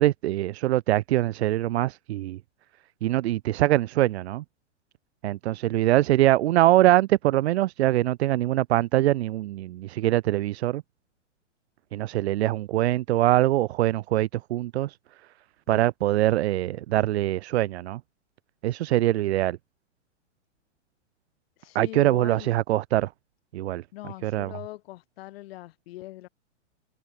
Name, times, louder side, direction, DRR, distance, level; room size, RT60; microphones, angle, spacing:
voice 1, 0.0-2.4 3.0-4.4 5.2-10.8 11.9-15.0 15.7-18.0 18.6-19.6 21.7-23.1 23.5-23.8 24.2-24.5, right 15 dB, 65° right, 0.7 m, -23 dB
voice 2, 21.6-22.5 23.9-26.3, left 17 dB, 55° left, 4.6 m, -41 dB
hypercardioid pair, 135°, 36 cm